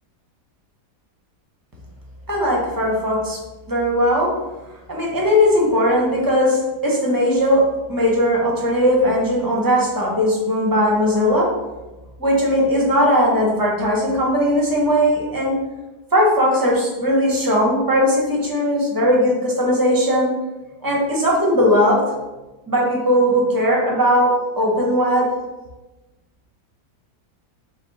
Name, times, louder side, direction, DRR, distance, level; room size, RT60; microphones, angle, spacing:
voice 1, 2.3-3.4 3.7-4.3 4.9-7.6 7.9-11.5 12.2-15.6 16.1-20.3 20.8-22.0 22.7-25.3, equal, 30° right, -3 dB, 0.4 m, -18 dB
5.0 x 2.0 x 3.9 m, 1.1 s
omnidirectional pair, 1.7 m